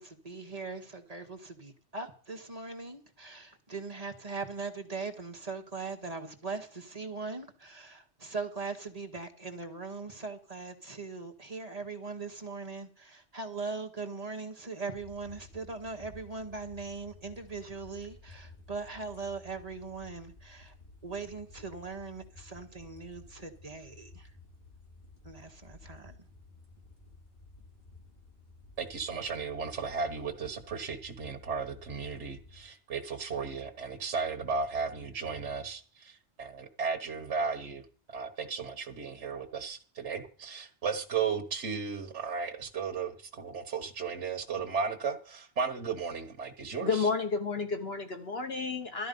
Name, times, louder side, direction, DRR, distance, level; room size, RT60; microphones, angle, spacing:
voice 1, 0.0-20.8 21.0-24.3 25.2-26.3, right 4 dB, 35° right, 1.6 m, -40 dB
sound 1, 14.9-32.6, left 3 dB, 35° left, 3.4 m, -54 dB
voice 2, 28.8-37.8 38.1-47.0, right 5 dB, 75° right, 1.6 m, -35 dB
voice 3, 46.8-49.1, left 4 dB, 60° left, 1.6 m, -31 dB
13.0 x 11.0 x 5.4 m
omnidirectional pair, 1.2 m